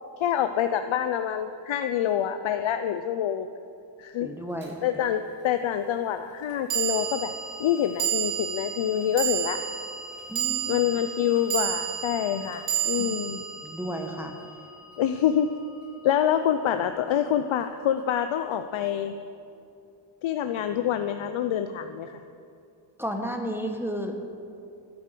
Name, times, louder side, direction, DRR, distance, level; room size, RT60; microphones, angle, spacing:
voice 1, 0.2-3.5 4.0-4.3 4.8-7.3 7.6-9.6 10.7-13.4 15.0-15.5 16.0-19.1 20.2-22.2, left 10 dB, 80° left, 8 dB, 0.7 m, -26 dB
voice 2, 4.2-4.8 10.3-10.9 13.0-13.1 13.6-14.3 23.0-24.1, equal, 5° right, 3 dB, 1.2 m, -32 dB
sound 1, 4.6-4.7 6.7-15.1, right 10 dB, 65° right, 3.3 m, -31 dB
13.5 x 11.5 x 6.8 m, 2.6 s
wide cardioid pair, 120°, 47 cm